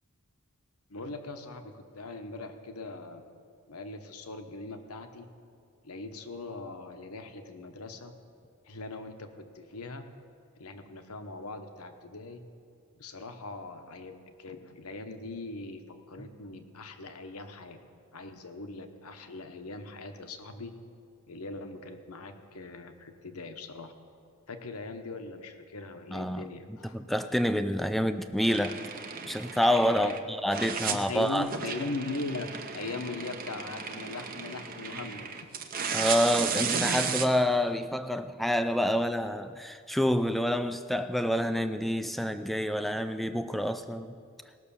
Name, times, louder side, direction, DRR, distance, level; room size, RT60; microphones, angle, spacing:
voice 1, 0.9-3.2 3.7-5.3 5.8-8.1 8.6-10.0 10.6-12.4 13.0-17.8 18.1-20.7 21.3-23.9 24.5-26.9 30.0-30.2 30.8-32.5 32.7-35.5, left 3 dB, 80° left, 1.0 m, -40 dB
voice 2, 26.1-26.5 26.9-28.8 29.3-31.5 35.9-44.2, equal, ahead, 0.3 m, -28 dB
sound 1, 28.4-30.2 30.5-37.3, right 6 dB, 40° right, 0.8 m, -34 dB
18.0 x 6.3 x 7.1 m
head